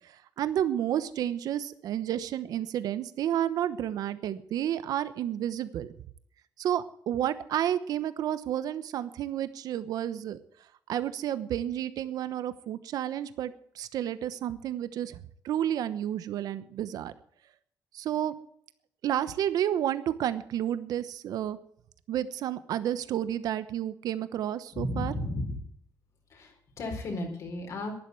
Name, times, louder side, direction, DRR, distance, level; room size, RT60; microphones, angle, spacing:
voice 1, 0.4-5.9 6.6-10.4 10.9-15.2 15.4-17.1 17.9-18.3 19.0-21.6 22.1-25.1, right 11 dB, 70° right, 13 dB, 1.0 m, -31 dB
voice 2, 24.7-25.6 26.3-27.9, left 1 dB, 55° left, 2 dB, 4.4 m, -34 dB
11.5 x 11.0 x 8.1 m, 0.65 s
cardioid pair, 155°, 7 cm